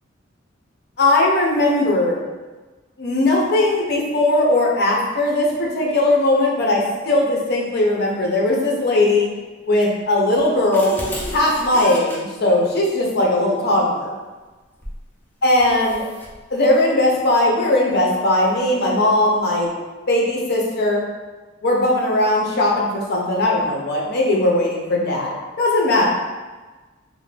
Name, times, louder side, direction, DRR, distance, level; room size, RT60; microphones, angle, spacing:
voice 1, 1.0-2.2 3.0-9.3 9.7-10.9 11.3-14.1 15.4-16.0 16.5-19.7 20.1-21.0 21.6-26.1, left 1 dB, 55° left, -2 dB, 0.6 m, -18 dB
sound 1, 10.3-12.2 14.8-15.1 15.6-16.3, equal, 10° left, 0.4 m, -32 dB
2.5 x 2.1 x 3.2 m, 1.2 s
head